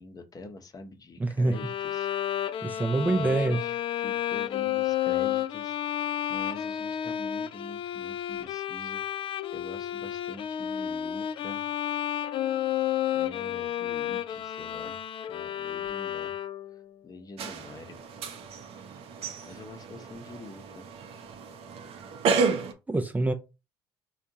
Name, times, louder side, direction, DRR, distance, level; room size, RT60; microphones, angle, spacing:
voice 1, 0.0-2.1 3.0-5.8 6.3-9.0 9.5-11.7 13.1-15.0 15.3-16.3 16.7-18.0 19.4-20.9, left 2 dB, 35° left, 0.8 m, -45 dB
voice 2, 1.2-1.6 2.6-3.6 22.9-23.3, right 2 dB, 15° right, 0.4 m, -25 dB
Bowed string instrument, 1.5-16.8, left 11 dB, 50° left, 0.4 m, -31 dB
sound 1, 17.4-22.7, right 5 dB, 60° right, 0.7 m, -32 dB
4.3 x 2.4 x 2.7 m
hypercardioid pair, 65°, 12 cm